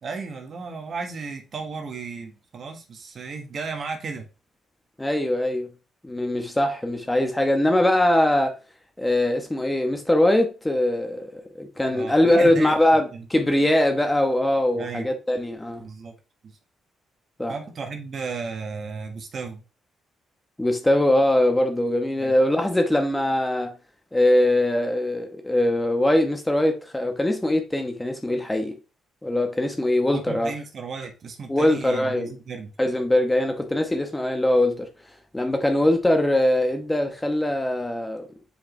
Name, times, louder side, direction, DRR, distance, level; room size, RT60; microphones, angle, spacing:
voice 1, 0.0-4.3 11.9-12.8 13.1-13.2 14.7-15.1 15.8-16.1 16.4-16.6 17.5-19.6 22.2-22.3 30.1-32.7, right 4 dB, 50° right, 1.4 m, -34 dB
voice 2, 5.0-5.7 6.0-8.5 9.0-15.8 17.4-17.5 20.6-23.7 24.1-28.8 29.2-30.5 31.5-32.3 32.8-34.9 35.3-38.3, left 1 dB, 10° left, 1.1 m, -22 dB
7.2 x 5.0 x 3.2 m
cardioid pair, 90°, 0 cm